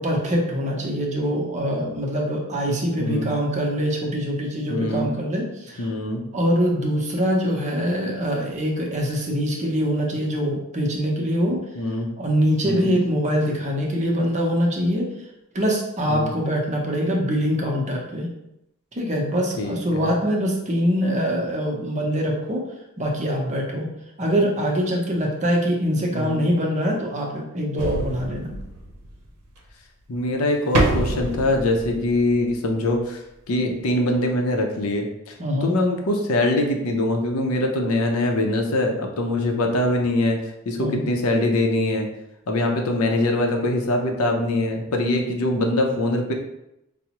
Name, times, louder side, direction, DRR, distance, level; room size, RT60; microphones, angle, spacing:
voice 1, 0.0-5.9 6.3-11.6 12.2-15.1 15.5-18.3 18.9-22.6 23.0-23.9 24.2-28.5 35.4-35.7 40.8-41.0, equal, 30° right, -1 dB, 0.6 m, -23 dB
voice 2, 4.7-5.1 5.8-6.2 11.8-12.1 12.6-12.9 16.1-16.3 19.6-20.1 26.0-26.4 30.1-35.4 35.6-40.4 40.7-42.1 42.5-46.3, left 1 dB, 70° left, 2 dB, 0.5 m, -23 dB
sound 1, 27.8-29.3 30.7-32.7 33.0-33.1, right 1 dB, 90° right, 0.6 m, -26 dB
4.6 x 2.0 x 2.9 m, 0.86 s
head